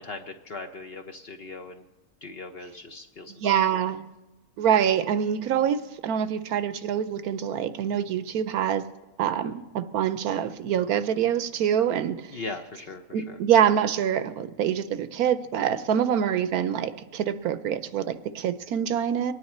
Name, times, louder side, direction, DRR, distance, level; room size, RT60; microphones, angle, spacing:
voice 1, 0.0-1.9 2.2-3.8 12.3-13.4, left 3 dB, 50° left, 0.8 m, -39 dB
voice 2, 3.4-4.1 4.6-8.8 9.2-12.3 13.1-19.3, right 9 dB, 75° right, 1.1 m, -25 dB
24.5 x 9.6 x 4.3 m
omnidirectional pair, 1.6 m